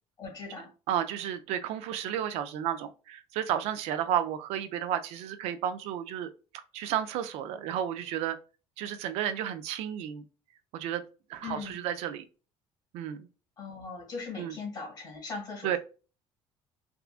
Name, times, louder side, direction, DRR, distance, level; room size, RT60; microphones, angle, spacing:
voice 1, 0.2-0.7 11.4-11.7 13.6-15.8, left 4 dB, 40° left, 1.5 m, -39 dB
voice 2, 0.9-6.3 6.7-8.4 8.8-10.2 10.7-11.0 11.3-12.2 12.9-13.3 14.4-14.6 15.6-15.8, right 10 dB, 75° right, 0.4 m, -32 dB
3.6 x 2.3 x 2.3 m
cardioid pair, 155°, 11 cm